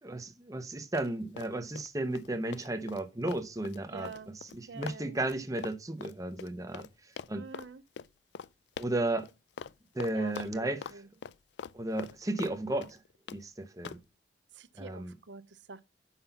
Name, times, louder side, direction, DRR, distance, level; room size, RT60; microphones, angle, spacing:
voice 1, 0.0-4.1 4.4-6.9 7.3-7.4 8.8-9.3 9.9-10.8 11.7-13.0 13.3-14.0 14.8-15.1, right 2 dB, 20° right, 0.8 m, -34 dB
Run, 0.9-1.9 2.1-6.9 7.2-7.7 8.0-8.1 8.3-8.5 8.8-9.3 9.6-9.7 10.0-11.0 11.2-12.6 12.8-13.4 13.8-14.0, left 6 dB, 70° left, 0.4 m, -43 dB
voice 2, 3.9-4.3 4.7-5.2 7.3-7.8 10.1-11.1 14.5-15.8, right 4 dB, 85° right, 0.7 m, -46 dB
5.8 x 5.6 x 6.9 m
head